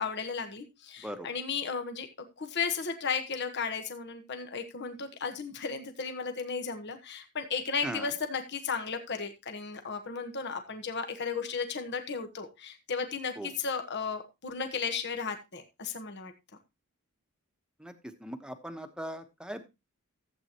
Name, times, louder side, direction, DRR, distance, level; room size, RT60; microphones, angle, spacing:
voice 1, 0.0-2.1 2.4-16.3, left 5 dB, 50° left, 6 dB, 1.3 m, -34 dB
voice 2, 18.2-19.6, equal, 5° right, 8 dB, 1.1 m, -39 dB
14.5 x 8.3 x 3.0 m, 0.25 s
head